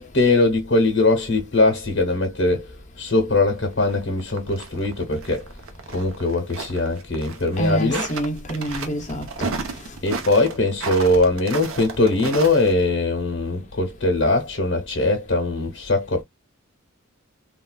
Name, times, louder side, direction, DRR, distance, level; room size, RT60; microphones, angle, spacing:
voice 1, 0.0-2.7 3.0-5.5 5.9-8.1 10.0-16.2, left 2 dB, 60° left, 0.9 m, -21 dB
sound 1, 3.1-12.9, right 4 dB, 75° right, 0.8 m, -34 dB
voice 2, 7.6-9.5 9.9-10.0, right 1 dB, 35° left, 0.8 m, -27 dB
3.5 x 2.2 x 2.3 m
head